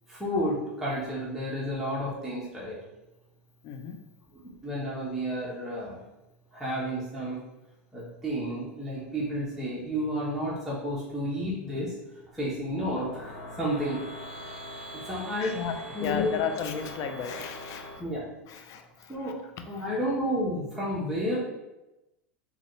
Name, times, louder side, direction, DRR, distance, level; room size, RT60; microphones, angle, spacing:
voice 1, 0.1-2.8 4.4-6.0 6.5-7.4 7.9-11.9 12.3-14.0 14.9-15.6 15.9-16.4 18.0-18.3 19.1-19.4 19.7-21.4, equal, 5° right, -7 dB, 1.0 m, -31 dB
voice 2, 3.6-4.0 15.4-15.7 16.0-17.9 18.5-18.8, left 7 dB, 45° left, 6 dB, 0.5 m, -33 dB
sound 1, 12.2-18.0, left 1 dB, 15° left, 1.2 m, -42 dB
3.9 x 2.5 x 3.1 m, 0.97 s
hypercardioid pair, 95°, 7 cm